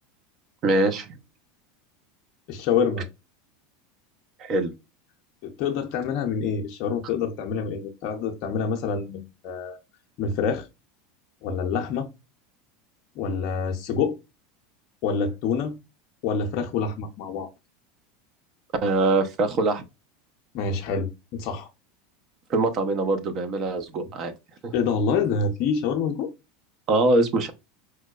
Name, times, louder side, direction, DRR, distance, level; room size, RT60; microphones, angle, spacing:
voice 1, 0.6-1.2 4.4-4.7 18.8-19.8 22.5-24.3 24.6-24.7 26.9-27.5, right 2 dB, 45° right, 0.7 m, -23 dB
voice 2, 2.5-3.1 5.4-9.8 10.2-10.7 11.4-12.1 13.2-14.2 15.0-15.8 16.2-17.5 20.5-21.7 24.0-24.1 24.7-26.3, left 6 dB, 55° left, 0.5 m, -26 dB
4.6 x 2.1 x 2.3 m
hypercardioid pair, 85°, 0 cm